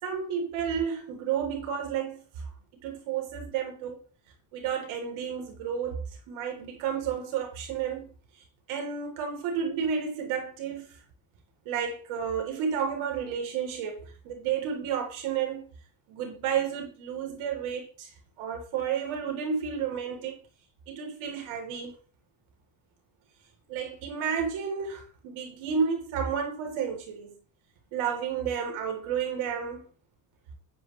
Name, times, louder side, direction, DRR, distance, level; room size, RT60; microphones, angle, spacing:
voice 1, 0.0-2.5 2.8-4.0 4.5-8.1 8.4-8.5 8.7-11.0 11.7-15.6 16.1-18.1 18.4-20.4 20.9-21.9 23.7-27.3 27.9-29.9, right 7 dB, 75° right, 3.7 m, -31 dB
10.5 x 10.0 x 3.3 m
cardioid pair, 115°, 48 cm